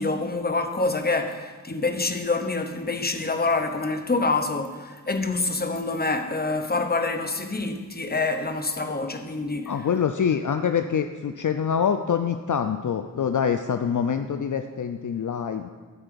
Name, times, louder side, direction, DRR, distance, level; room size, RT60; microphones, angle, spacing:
voice 1, 0.0-9.7, left 3 dB, 25° left, 0.9 m, -26 dB
voice 2, 9.7-15.7, left 7 dB, 60° left, 0.5 m, -25 dB
12.5 x 4.4 x 6.9 m
wide cardioid pair, 50°, 35 cm